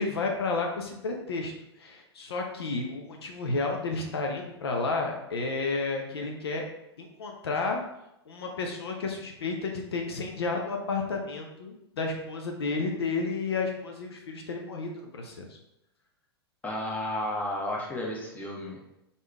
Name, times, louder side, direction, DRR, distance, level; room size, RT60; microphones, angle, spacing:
voice 1, 0.0-1.5 1.8-6.7 7.0-7.8 8.3-15.6, left 3 dB, 70° left, 2 dB, 0.7 m, -31 dB
voice 2, 16.6-18.8, left 1 dB, 10° left, -2 dB, 1.1 m, -32 dB
4.1 x 3.6 x 3.4 m, 0.84 s
figure-of-eight pair, 100°, 14 cm